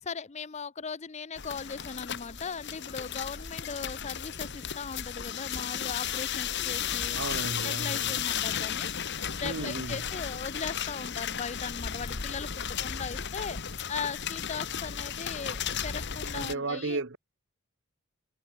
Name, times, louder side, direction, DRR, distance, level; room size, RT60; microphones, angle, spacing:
voice 1, 0.0-7.2 7.6-13.6 13.9-17.0, left 5 dB, 30° left, 0.5 m, -38 dB
sound 1, 1.4-16.5, left 8 dB, 50° left, 1.4 m, -34 dB
voice 2, 7.1-8.2 9.4-10.0 16.3-17.2, right 3 dB, 55° right, 1.2 m, -34 dB
head